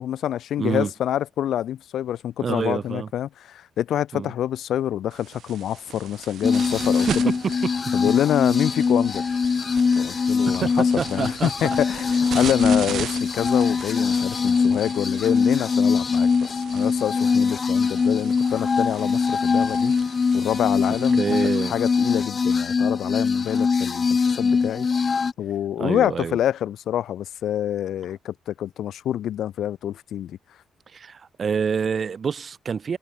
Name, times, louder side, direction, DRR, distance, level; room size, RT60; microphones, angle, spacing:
voice 1, 0.0-7.3 7.9-9.2 10.0-19.9 20.3-21.2 21.6-24.1 24.4-24.9 25.4-30.4, left 11 dB, 70° left, 2.0 m, -26 dB
voice 2, 0.6-0.9 2.4-3.1 4.1-4.3 7.1-7.5 10.5-11.8 21.2-21.7 25.8-26.4 30.9-33.0, right 6 dB, 45° right, 3.0 m, -26 dB
sound 1, 5.1-21.6, right 10 dB, 70° right, 5.7 m, -39 dB
sound 2, 6.4-25.3, left 5 dB, 40° left, 1.0 m, -22 dB
cardioid pair, 90°, 0 cm